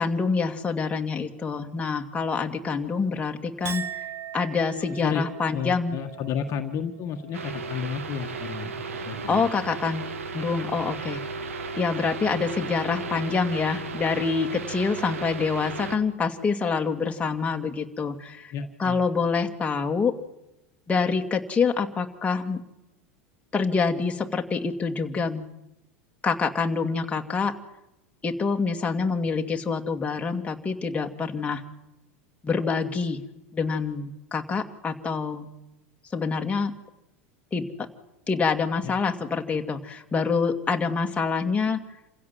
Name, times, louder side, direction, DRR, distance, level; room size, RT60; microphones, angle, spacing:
voice 1, 0.0-4.1 4.3-6.0 9.3-11.2 11.8-18.5 18.8-20.1 20.9-22.6 23.5-25.4 26.2-27.5 28.2-31.6 32.4-33.2 33.5-35.5 36.1-36.7 37.5-37.7 38.3-41.8, left 5 dB, 15° left, 2 dB, 2.4 m, -26 dB
Chink clink, 3.6-10.2 10.6-11.2, right 8 dB, 35° right, 1.6 m, -42 dB
voice 2, 4.8-5.3 5.5-8.8 9.0-9.4 18.5-19.0 38.8-38.9, left 7 dB, 45° left, 5 dB, 1.8 m, -32 dB
sound 1, 7.3-16.0, right 4 dB, 85° right, 2.0 m, -35 dB
28.0 x 16.0 x 7.5 m, 0.92 s
hypercardioid pair, 90°, 7 cm